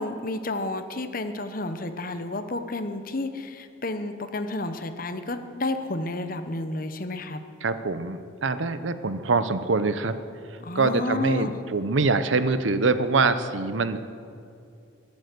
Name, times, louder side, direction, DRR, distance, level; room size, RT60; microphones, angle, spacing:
voice 1, 0.0-7.4 10.6-11.6, left 2 dB, 45° left, 9 dB, 1.0 m, -31 dB
voice 2, 7.6-10.1 10.7-14.0, right 3 dB, 80° right, 11 dB, 0.8 m, -24 dB
22.0 x 8.3 x 6.8 m, 2.4 s
head